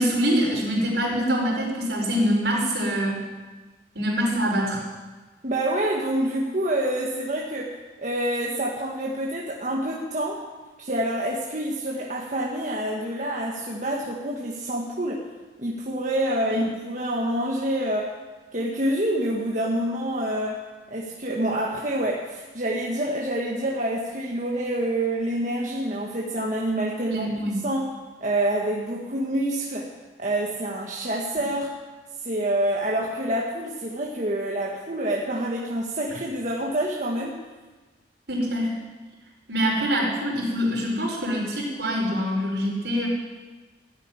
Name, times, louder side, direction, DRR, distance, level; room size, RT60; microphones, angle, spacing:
voice 1, 0.0-3.2 3.9-4.8 16.5-16.7 27.1-27.6 38.3-38.7 39.5-43.1, equal, 70° right, -3 dB, 5.5 m, -24 dB
voice 2, 5.4-10.4 10.8-15.2 15.6-18.1 18.5-27.9 28.2-29.9 30.2-31.7 32.2-37.4, right 1 dB, 45° right, -3 dB, 1.6 m, -27 dB
15.0 x 8.5 x 9.9 m, 1.3 s
head